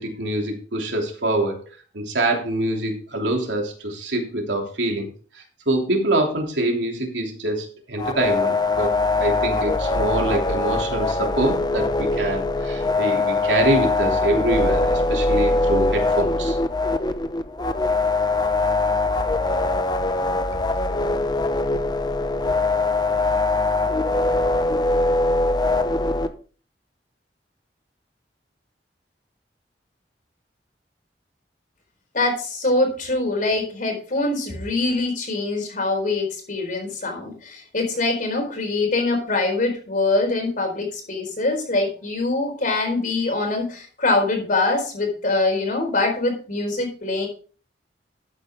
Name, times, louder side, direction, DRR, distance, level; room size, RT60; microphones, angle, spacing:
voice 1, 0.0-1.6 1.9-5.1 5.3-8.9 9.2-16.6, right 1 dB, 85° right, 1 dB, 2.9 m, -25 dB
sound 1, 8.0-26.3, left 2 dB, 25° left, 0.8 m, -22 dB
voice 2, 32.1-47.3, left 2 dB, 50° left, 3 dB, 4.3 m, -23 dB
13.0 x 8.3 x 3.6 m, 0.40 s
head